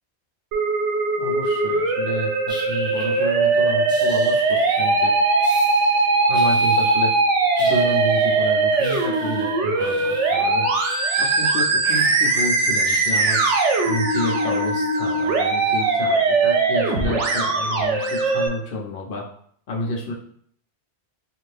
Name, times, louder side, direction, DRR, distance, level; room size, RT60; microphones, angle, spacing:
Musical instrument, 0.5-18.5, right 3 dB, 80° right, 0.9 m, -20 dB
voice 1, 1.2-5.1 6.3-7.1 7.6-10.7 11.2-13.6 13.8-19.2 19.7-20.1, left 1 dB, 60° left, -1 dB, 0.7 m, -30 dB
sound 1, 2.5-3.5 3.9-5.1 5.4-6.0 6.3-7.2 7.5-11.5 11.8-13.9, equal, 5° right, 0.5 m, -40 dB
2.6 x 2.5 x 3.3 m, 0.62 s
omnidirectional pair, 1.2 m